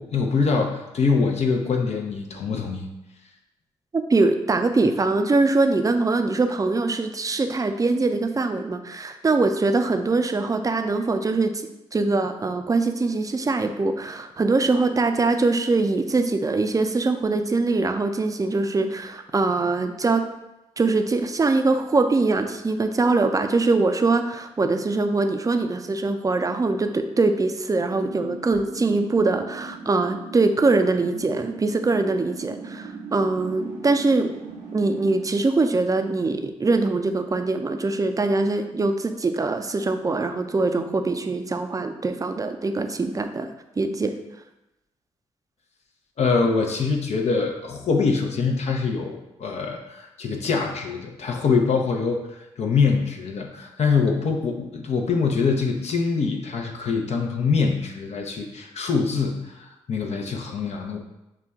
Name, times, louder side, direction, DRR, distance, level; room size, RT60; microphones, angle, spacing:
voice 1, 0.0-2.9 46.2-52.2 52.6-61.0, left 4 dB, 55° left, 1 dB, 0.7 m, -24 dB
voice 2, 3.9-11.6 11.9-20.2 20.8-34.3 34.7-43.5 43.8-44.2, right 3 dB, 25° right, 7 dB, 0.5 m, -22 dB
sound 1, 27.9-35.2, right 3 dB, 65° right, 0.7 m, -39 dB
5.7 x 2.2 x 3.4 m, 0.94 s
hypercardioid pair, 40°, 13 cm